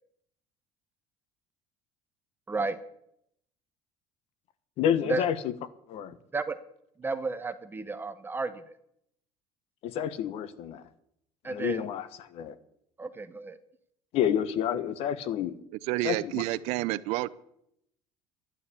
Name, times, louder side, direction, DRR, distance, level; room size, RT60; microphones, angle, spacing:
voice 1, 2.5-2.8 5.1-5.2 6.3-6.5 7.0-8.6 11.4-11.8 13.0-13.6, right 3 dB, 20° right, 11 dB, 0.9 m, -32 dB
voice 2, 4.8-5.5 5.9-6.1 9.8-10.9 11.4-12.6 14.1-15.6 16.0-16.4, left 9 dB, 60° left, 15 dB, 1.2 m, -29 dB
voice 3, 15.9-17.3, right 17 dB, 75° right, 16 dB, 0.7 m, -29 dB
11.5 x 10.5 x 8.3 m, 0.75 s
supercardioid pair, 110°, 11 cm